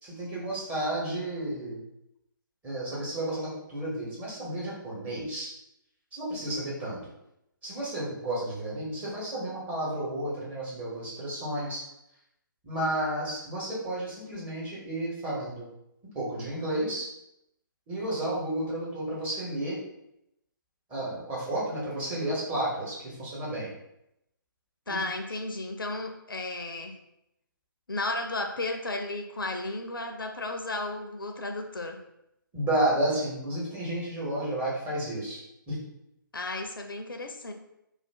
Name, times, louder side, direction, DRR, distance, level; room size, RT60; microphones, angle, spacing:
voice 1, 0.0-1.8 2.6-5.5 6.1-7.0 7.6-11.8 12.6-15.7 16.1-17.1 17.9-19.8 20.9-23.7 24.9-25.0 32.5-35.4 35.7-35.8, right 1 dB, 15° right, -7 dB, 1.0 m, -32 dB
voice 2, 24.9-27.0 27.9-32.0 36.3-37.5, left 2 dB, 80° left, 5 dB, 0.5 m, -34 dB
2.4 x 2.4 x 3.3 m, 0.83 s
figure-of-eight pair, 140°, 11 cm